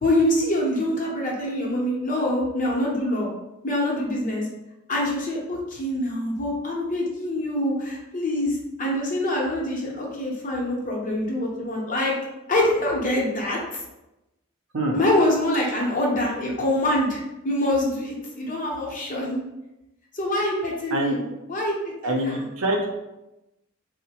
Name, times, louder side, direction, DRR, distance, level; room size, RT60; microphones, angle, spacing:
voice 1, 0.0-3.3 3.6-4.5 4.9-12.1 12.5-13.6 14.9-19.4 20.1-22.4, left 1 dB, 40° left, -3 dB, 0.8 m, -25 dB
voice 2, 22.0-22.9, right 1 dB, 65° right, 0 dB, 0.6 m, -25 dB
3.9 x 2.1 x 2.9 m, 0.94 s
head